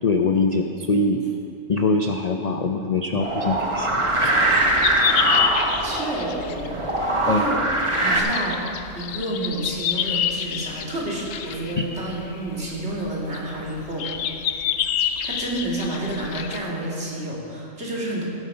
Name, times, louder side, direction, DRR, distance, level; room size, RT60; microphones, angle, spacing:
voice 1, 0.0-1.2 1.7-3.9 4.2-4.6 5.6-5.9 7.3-7.4 11.8-11.9 12.6-12.7, left 3 dB, 50° left, 4 dB, 0.5 m, -23 dB
sound 1, 3.2-8.2, right 1 dB, 25° right, 1.2 m, -22 dB
sound 2, 4.5-16.6, left 9 dB, 75° left, 1.0 m, -28 dB
voice 2, 5.8-7.6 8.0-8.6 8.9-14.1 15.2-18.2, right 1 dB, 55° right, -5 dB, 2.9 m, -30 dB
16.5 x 8.1 x 5.6 m, 2.6 s
omnidirectional pair, 1.4 m